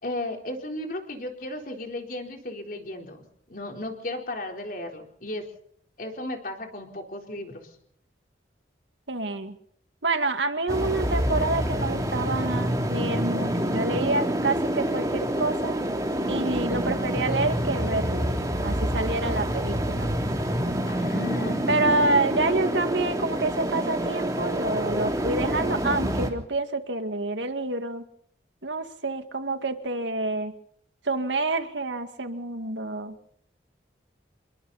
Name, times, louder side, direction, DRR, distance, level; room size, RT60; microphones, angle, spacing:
voice 1, 0.0-5.4 6.0-7.7 20.9-21.7, left 1 dB, 50° left, 2 dB, 4.2 m, -35 dB
voice 2, 9.1-9.6 10.0-15.8 16.3-18.4 18.6-20.1 21.7-28.1 28.6-30.5 31.1-33.1, right 2 dB, 80° right, 7 dB, 2.2 m, -28 dB
sound 1, 10.7-26.3, equal, 20° right, 3.2 m, -27 dB
28.5 x 22.0 x 4.3 m, 0.64 s
head